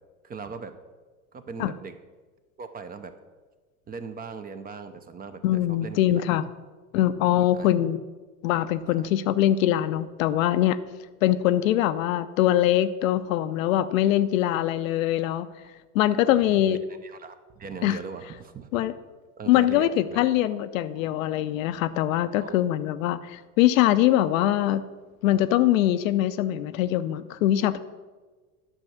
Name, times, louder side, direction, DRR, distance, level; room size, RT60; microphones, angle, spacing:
voice 1, 0.2-0.8 1.3-1.9 2.6-3.1 3.9-6.2 7.5-7.7 8.9-9.1 16.2-18.9 19.4-20.2 22.4-22.6, right 5 dB, 20° right, 10 dB, 0.7 m, -40 dB
voice 2, 5.4-6.4 6.9-8.0 8.4-10.8 11.2-15.5 15.9-16.8 17.8-18.0 18.7-18.9 19.5-24.8 25.2-27.8, left 13 dB, 60° left, 13 dB, 0.6 m, -23 dB
10.0 x 6.1 x 5.9 m, 1.3 s
hypercardioid pair, 90°, 45 cm